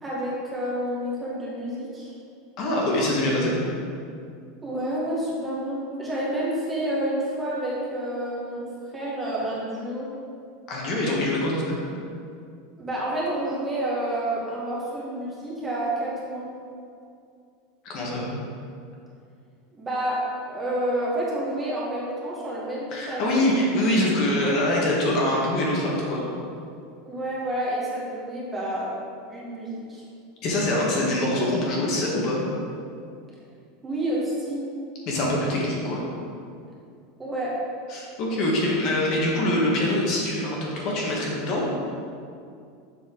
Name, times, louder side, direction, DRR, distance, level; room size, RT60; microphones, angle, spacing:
voice 1, 0.0-2.1 4.6-8.7 8.9-10.1 12.8-16.5 19.7-23.4 27.0-28.9 29.3-30.0 33.8-34.6 37.2-37.5, right 1 dB, 15° right, -6 dB, 1.4 m, -29 dB
voice 2, 2.6-3.5 10.7-11.8 17.8-18.3 22.9-26.2 30.4-32.4 35.1-36.0 37.9-41.7, left 1 dB, 40° left, -3 dB, 1.4 m, -24 dB
7.0 x 5.6 x 3.8 m, 2.4 s
supercardioid pair, 160°, 0 cm